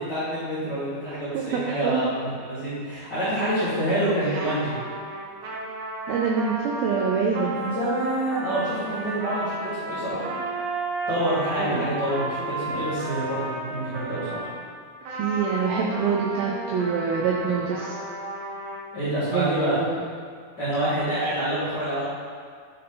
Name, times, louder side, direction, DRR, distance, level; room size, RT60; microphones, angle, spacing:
voice 1, 0.0-4.7 7.5-10.3 11.1-14.5 18.9-19.8 20.6-22.0, right 1 dB, 70° left, -12 dB, 1.0 m, -27 dB
voice 2, 1.3-2.0 4.3-4.4 6.1-7.6 8.9-9.2 11.6-11.9 15.1-18.0 19.3-20.0, right 6 dB, 90° right, -1 dB, 2.1 m, -26 dB
Trumpet, 4.3-14.5 15.0-18.8, right 2 dB, 75° right, 2.4 m, -33 dB
10.5 x 3.9 x 3.8 m, 2.1 s
omnidirectional pair, 5.0 m